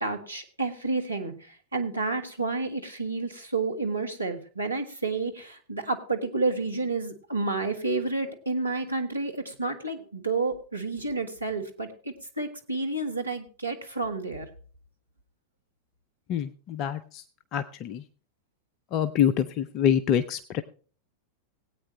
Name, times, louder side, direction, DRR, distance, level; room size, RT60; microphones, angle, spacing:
voice 1, 0.0-14.5, right 3 dB, 85° right, 4 dB, 1.4 m, -30 dB
voice 2, 16.3-17.2 17.5-18.0 18.9-20.6, left 9 dB, 40° left, 14 dB, 0.5 m, -26 dB
18.5 x 8.8 x 3.1 m, 0.40 s
figure-of-eight pair, 90°, 0 cm